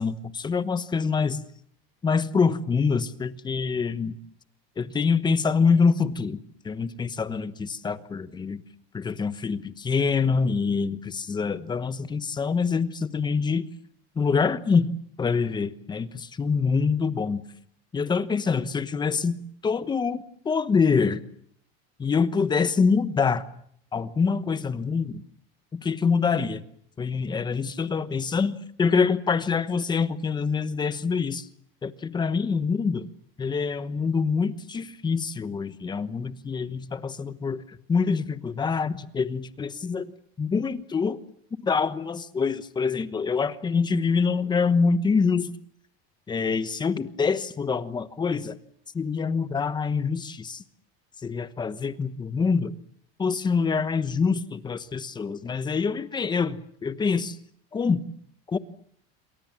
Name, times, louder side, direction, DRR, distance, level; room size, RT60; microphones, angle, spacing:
voice 1, 0.0-1.4 2.0-4.1 4.8-6.4 6.6-8.6 8.9-13.7 14.2-17.4 17.9-21.2 22.0-23.4 23.9-25.2 25.7-26.6 27.0-31.5 31.8-33.1 33.4-37.6 37.9-40.1 40.4-41.2 41.6-45.5 46.3-48.6 48.9-50.6 51.2-52.7 53.2-57.4 57.7-58.0 58.5-58.6, left 5 dB, 15° left, 1.1 m, -25 dB
28.0 x 24.0 x 7.5 m
cardioid pair, 170°, 31 cm